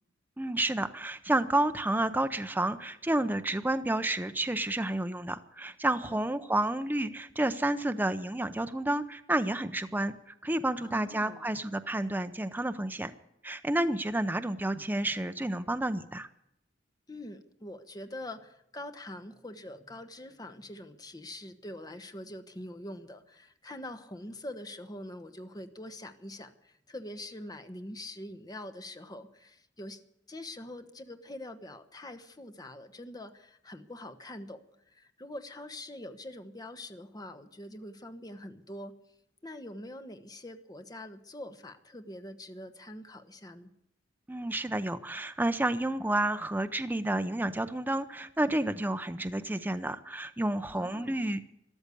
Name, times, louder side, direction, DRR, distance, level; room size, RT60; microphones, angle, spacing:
voice 1, 0.4-10.1 10.4-13.1 13.4-16.3 44.3-51.4, right 1 dB, 10° right, 9 dB, 0.6 m, -30 dB
voice 2, 10.8-11.5 17.1-30.0 30.3-34.6 34.9-39.0 39.4-43.7 50.7-51.3, left 1 dB, 20° left, 8 dB, 1.2 m, -44 dB
13.5 x 12.5 x 8.3 m, 0.81 s
head